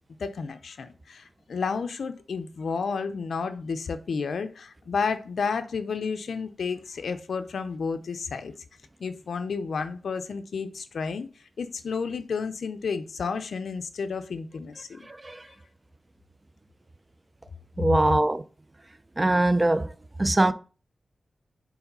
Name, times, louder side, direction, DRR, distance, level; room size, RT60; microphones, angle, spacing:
voice 1, 0.2-8.5 9.0-11.3 11.6-15.1, left 5 dB, 80° left, 0.5 m, -31 dB
voice 2, 15.1-15.4 17.8-18.4 19.2-19.9 20.2-20.5, right 2 dB, 20° right, 0.4 m, -22 dB
4.7 x 3.7 x 5.3 m
wide cardioid pair, 110°, 0 cm